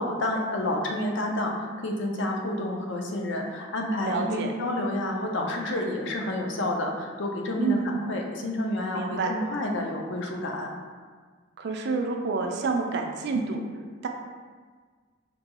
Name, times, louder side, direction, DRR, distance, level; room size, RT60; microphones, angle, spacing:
voice 1, 0.0-10.7, left 1 dB, 60° left, 1 dB, 0.5 m, -29 dB
voice 2, 4.0-4.5 7.6-7.9 8.9-9.3 11.6-13.6 14.0-14.1, right 4 dB, 55° right, 3 dB, 0.4 m, -28 dB
5.2 x 2.2 x 2.9 m, 1.5 s
head